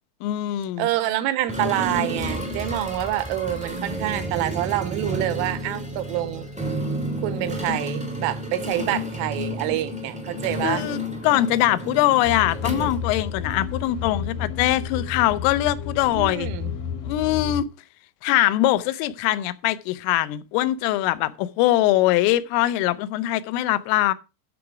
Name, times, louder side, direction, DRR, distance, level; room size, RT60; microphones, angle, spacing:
voice 1, 0.2-0.9 10.6-16.5 17.0-17.7 18.2-24.1, left 14 dB, 85° left, 3.2 m, -22 dB
voice 2, 0.8-6.5 7.2-10.9 16.1-16.7, right 14 dB, 90° right, 3.3 m, -27 dB
sound 1, 1.5-13.8, equal, 5° right, 0.5 m, -31 dB
sound 2, 12.2-17.6, left 7 dB, 70° left, 2.3 m, -31 dB
13.5 x 5.9 x 4.8 m
omnidirectional pair, 5.8 m